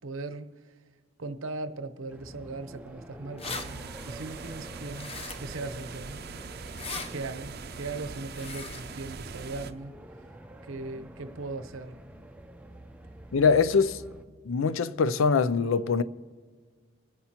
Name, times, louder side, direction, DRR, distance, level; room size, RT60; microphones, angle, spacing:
voice 1, 0.0-0.8 1.2-3.8 4.0-6.2 6.9-10.0 10.6-12.0, right 3 dB, 80° right, 0.8 m, -39 dB
sound 1, 2.1-14.2, right 1 dB, 5° right, 0.5 m, -48 dB
sound 2, 2.9-3.0 3.2-3.7 4.9-5.6 6.7-7.1 8.3-8.8, left 4 dB, 30° left, 0.7 m, -38 dB
sound 3, 3.4-9.7, right 4 dB, 50° right, 0.5 m, -42 dB
voice 2, 13.3-14.0 14.4-16.0, left 5 dB, 80° left, 0.5 m, -23 dB
25.5 x 9.7 x 3.0 m
head